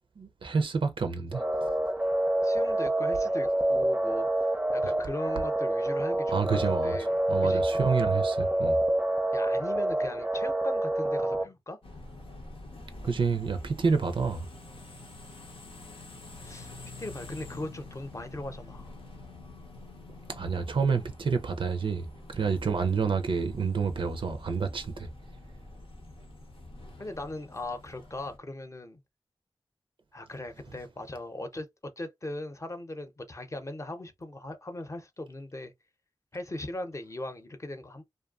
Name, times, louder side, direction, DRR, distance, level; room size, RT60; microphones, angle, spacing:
voice 1, 0.2-1.4 6.3-6.9 7.3-8.8 13.0-14.5 20.3-22.0 22.3-25.1, right 5 dB, 65° right, 0.4 m, -28 dB
sound 1, 1.3-11.4, right 1 dB, 15° right, 0.5 m, -27 dB
voice 2, 2.4-4.5 4.7-7.7 9.3-11.8 16.4-16.7 17.0-18.9 27.0-29.0 30.1-31.7 32.0-35.7 36.3-38.0, left 1 dB, 35° left, 0.7 m, -39 dB
sound 2, 11.8-28.4, left 2 dB, 85° left, 0.8 m, -47 dB
2.6 x 2.2 x 2.3 m
cardioid pair, 50°, 9 cm